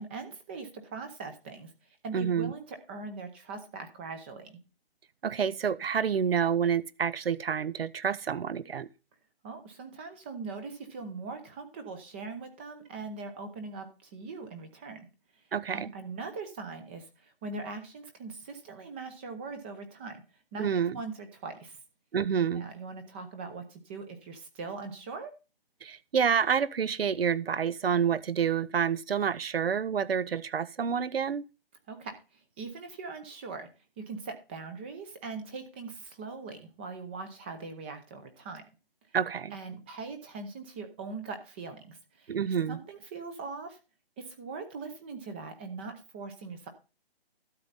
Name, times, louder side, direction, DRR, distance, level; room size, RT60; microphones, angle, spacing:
voice 1, 0.0-1.7 2.0-4.6 9.4-15.1 15.7-20.2 20.5-20.7 20.9-21.8 22.5-25.3 31.9-33.7 34.1-38.6 39.5-42.3 42.7-43.8 44.2-46.7, right 4 dB, 10° right, 0.6 m, -41 dB
voice 2, 2.1-2.5 5.2-8.9 15.5-15.9 20.6-21.0 22.1-22.7 25.8-31.4 39.1-39.6 42.3-42.8, right 7 dB, 70° right, 0.9 m, -28 dB
12.5 x 7.3 x 4.0 m
hypercardioid pair, 155°, 31 cm